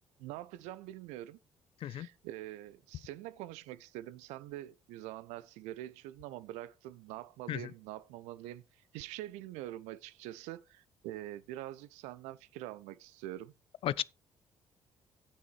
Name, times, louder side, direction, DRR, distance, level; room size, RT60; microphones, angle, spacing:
voice 1, 0.2-1.4 1.8-13.5, right 14 dB, 60° right, 0.5 m, -45 dB
voice 2, 1.8-2.1 7.5-7.6 13.8-14.0, left 12 dB, 45° left, 0.4 m, -33 dB
16.5 x 5.9 x 3.1 m
figure-of-eight pair, 45°, 13 cm